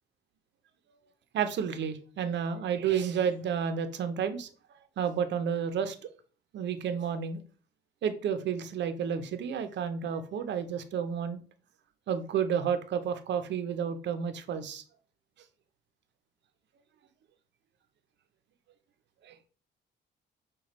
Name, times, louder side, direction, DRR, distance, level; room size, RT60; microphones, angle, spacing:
voice 1, 1.3-4.5 5.0-6.0 6.5-7.4 8.0-11.4 12.1-14.8 19.2-19.3, right 7 dB, 65° right, 0.6 m, -31 dB
5.8 x 2.3 x 3.0 m
cardioid pair, 90°, 20 cm